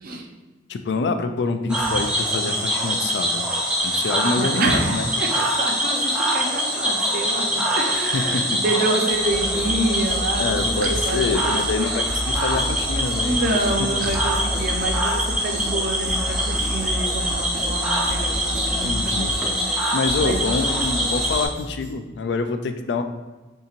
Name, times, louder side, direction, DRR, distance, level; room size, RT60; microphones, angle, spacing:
voice 1, 0.7-3.4 3.8-5.1 8.1-8.6 10.4-13.5 13.8-13.9 16.7-16.8 18.8-19.3 19.9-23.0, left 4 dB, 75° left, 8 dB, 0.4 m, -26 dB
Cricket / Frog, 1.7-21.5, right 1 dB, 5° right, 0.7 m, -24 dB
voice 2, 4.3-5.3 5.6-11.6 13.2-19.6 20.2-20.5, right 2 dB, 55° right, 1 dB, 0.6 m, -27 dB
sound 1, 9.1-21.9, equal, 35° right, 1.3 m, -31 dB
5.4 x 2.8 x 2.5 m, 1.2 s
head